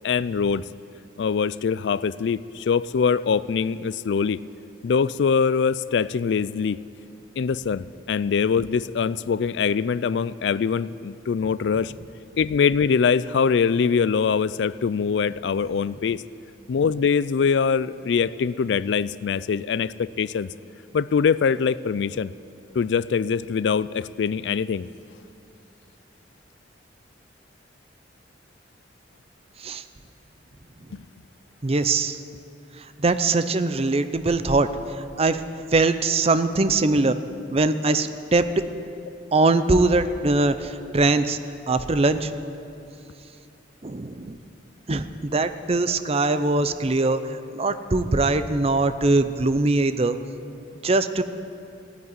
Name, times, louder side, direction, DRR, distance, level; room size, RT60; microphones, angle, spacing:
voice 1, 0.0-0.6 1.2-4.4 4.8-6.8 7.4-11.9 12.4-16.2 16.7-20.5 20.9-22.3 22.7-24.9 30.9-31.0, left 6 dB, 65° left, 18 dB, 0.4 m, -23 dB
voice 2, 31.6-32.2 32.8-35.4 35.7-37.1 37.5-38.5 39.3-41.4 41.7-42.3 43.8-44.4 44.9-50.2 50.8-51.2, right 3 dB, 30° right, 11 dB, 0.6 m, -22 dB
15.0 x 9.5 x 9.5 m, 2.7 s
head